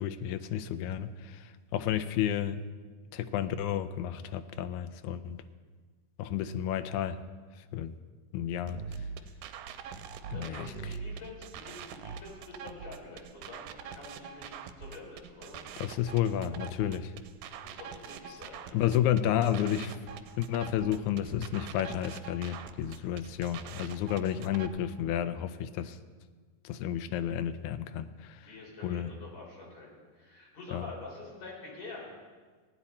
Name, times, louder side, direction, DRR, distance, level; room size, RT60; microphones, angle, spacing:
voice 1, 0.0-2.6 3.1-5.4 6.2-7.2 7.7-7.9 8.3-8.8 10.3-10.7 15.8-17.1 18.7-20.0 20.4-26.0 26.6-28.5 28.8-29.1 30.7-30.9, left 10 dB, 80° left, 11 dB, 1.8 m, -31 dB
sound 1, 8.7-24.7, right 6 dB, 80° right, 2.2 m, -43 dB
voice 2, 10.3-15.6 17.6-18.8 28.4-32.1, left 2 dB, 55° left, -3 dB, 4.7 m, -47 dB
17.0 x 10.0 x 4.2 m, 1.5 s
omnidirectional pair, 3.8 m